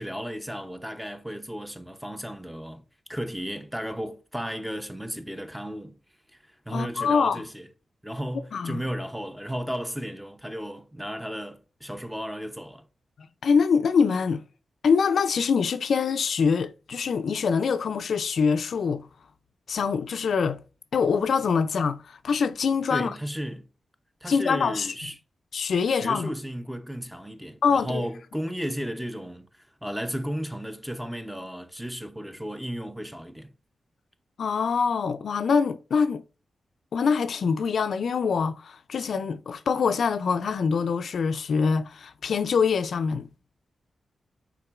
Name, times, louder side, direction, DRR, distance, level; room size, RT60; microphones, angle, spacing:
voice 1, 0.0-2.8 3.1-6.0 6.7-7.7 8.0-12.9 22.9-23.7 24.2-25.2 25.9-33.5, equal, 5° right, 0.6 m, -34 dB
voice 2, 6.7-7.4 8.5-8.8 13.4-14.4 14.8-19.1 19.7-20.6 20.9-23.1 24.3-24.9 25.5-26.3 27.6-28.1 34.4-36.2 36.9-43.3, left 5 dB, 70° left, 0.4 m, -24 dB
5.8 x 3.7 x 2.4 m
wide cardioid pair, 95°, 0 cm